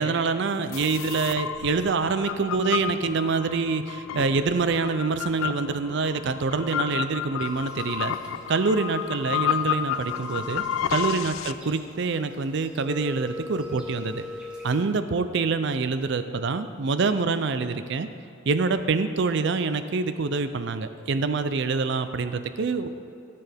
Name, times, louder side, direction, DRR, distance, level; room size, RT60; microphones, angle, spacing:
voice 1, 0.0-8.2 8.5-10.6 10.9-14.2 14.6-18.1 18.5-22.9, right 4 dB, 60° right, 11 dB, 0.5 m, -26 dB
sound 1, 0.7-11.5, left 9 dB, 85° left, 0.3 m, -31 dB
sound 2, 7.4-14.8, left 1 dB, 5° right, 1.5 m, -42 dB
15.0 x 6.8 x 3.5 m, 2.6 s
head